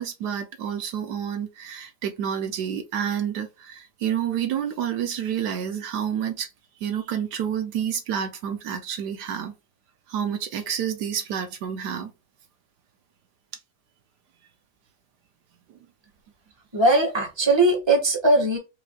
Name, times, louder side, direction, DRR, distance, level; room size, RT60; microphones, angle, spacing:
voice 1, 0.0-6.5 6.8-9.5 10.1-12.1, right 8 dB, 75° right, 1.2 m, -29 dB
voice 2, 16.7-18.6, right 2 dB, 15° right, 1.4 m, -20 dB
4.8 x 3.1 x 2.3 m
omnidirectional pair, 1.8 m